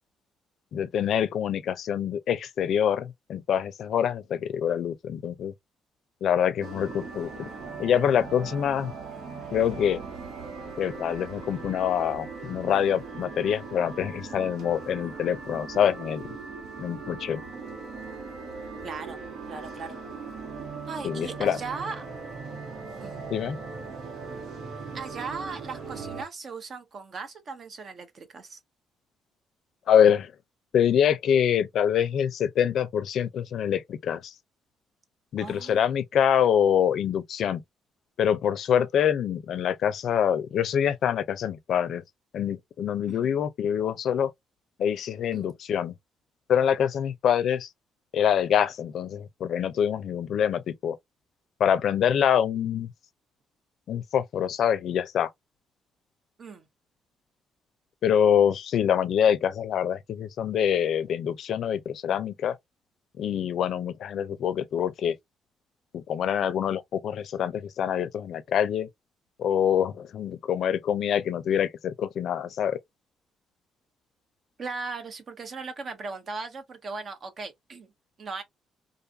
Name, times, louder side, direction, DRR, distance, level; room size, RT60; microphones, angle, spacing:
voice 1, 0.7-5.5 6.2-7.5 7.8-8.9 9.5-10.0 10.8-16.2 16.8-17.4 21.0-21.6 23.3-23.6 29.9-30.3 30.7-34.3 35.3-37.6 38.2-42.0 42.3-44.3 44.8-45.9 46.5-47.7 48.1-51.0 51.6-52.9 53.9-55.3 58.0-62.6 63.2-65.1 65.9-68.9 69.4-72.8, left 9 dB, 70° left, 0.5 m, -25 dB
sound 1, 6.6-26.2, right 4 dB, 75° right, 1.5 m, -39 dB
voice 2, 18.8-19.2 19.5-20.0 20.9-22.1 23.0-23.2 24.9-28.6 35.4-35.8 43.1-43.3 45.3-45.5 56.4-56.7 74.6-77.9 78.2-78.4, right 4 dB, 50° right, 0.8 m, -38 dB
2.6 x 2.4 x 2.7 m
cardioid pair, 90°, 0 cm